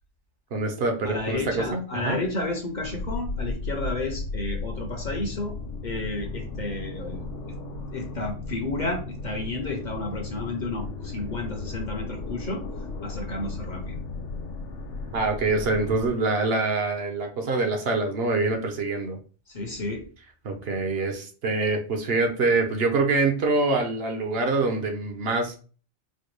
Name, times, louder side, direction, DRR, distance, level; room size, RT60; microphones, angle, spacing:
voice 1, 0.5-2.2 15.1-19.2 20.4-25.6, right 3 dB, 60° right, 4 dB, 0.9 m, -25 dB
voice 2, 1.0-5.5 5.8-7.3 7.9-12.6 13.0-13.9 19.5-20.0, left 2 dB, 50° left, 3 dB, 0.7 m, -32 dB
sound 1, 2.8-16.1, left 3 dB, 90° left, 1.0 m, -35 dB
4.2 x 2.2 x 3.1 m, 0.38 s
omnidirectional pair, 1.2 m